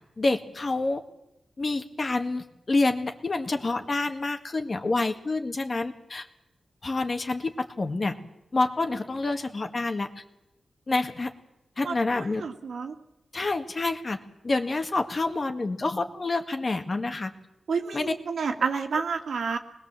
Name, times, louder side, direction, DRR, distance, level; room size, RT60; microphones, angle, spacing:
voice 1, 0.2-1.0 1.6-6.3 6.8-8.2 8.5-10.2 10.9-11.3 11.8-12.4 13.3-17.3 17.9-18.1, left 3 dB, 35° left, 6 dB, 1.9 m, -28 dB
voice 2, 11.8-12.9 17.7-19.6, right 5 dB, 80° right, 4 dB, 2.4 m, -30 dB
25.5 x 20.5 x 7.6 m, 0.91 s
wide cardioid pair, 125°, 0 cm